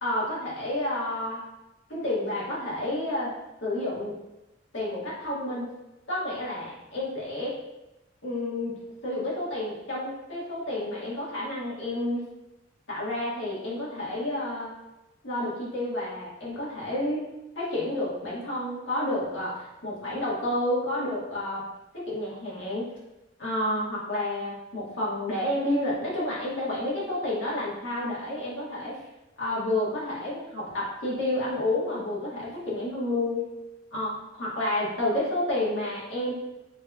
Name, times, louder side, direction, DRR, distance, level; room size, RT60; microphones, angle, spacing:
voice 1, 0.0-1.4 1.9-3.3 3.6-4.1 4.7-5.7 6.1-7.5 8.2-8.8 9.0-12.2 12.9-14.7 15.2-17.2 17.5-21.6 21.9-22.9 23.4-29.0 29.4-33.4 33.9-36.3, left 1 dB, 75° left, -7 dB, 1.5 m, -30 dB
6.2 x 2.8 x 2.3 m, 0.98 s
head